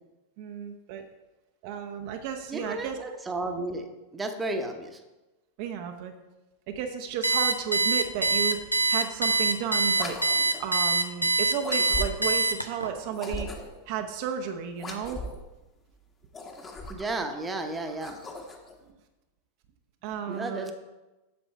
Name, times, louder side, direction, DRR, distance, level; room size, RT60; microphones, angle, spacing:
voice 1, 0.4-1.1 1.6-3.0 5.6-6.1 6.7-10.2 10.6-13.5 13.9-15.2 20.0-20.7, right 8 dB, 45° right, 5 dB, 0.7 m, -33 dB
voice 2, 2.5-5.0 16.9-18.2 20.3-20.7, right 2 dB, 15° right, 5 dB, 0.9 m, -33 dB
Alarm, 7.2-12.9, right 3 dB, 90° left, 0.6 m, -24 dB
sound 1, 9.9-10.7 11.6-12.4 13.1-13.9 14.7-15.5 16.2-17.2 17.8-18.7, left 1 dB, 20° left, 1.2 m, -38 dB
8.6 x 7.0 x 4.4 m, 1.1 s
figure-of-eight pair, 90°, 0 cm